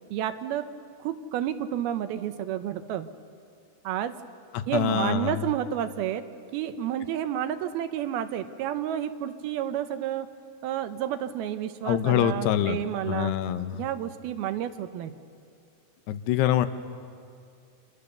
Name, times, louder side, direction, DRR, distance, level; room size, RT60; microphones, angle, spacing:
voice 1, 0.1-0.7 1.0-3.1 3.8-4.1 4.7-6.2 6.5-10.3 10.6-13.3 13.7-15.2, right 10 dB, 75° right, 10 dB, 2.6 m, -30 dB
voice 2, 4.5-5.5 11.8-13.9 16.1-16.7, left 11 dB, 85° left, 10 dB, 3.0 m, -25 dB
28.0 x 25.5 x 6.8 m, 2.3 s
omnidirectional pair, 4.7 m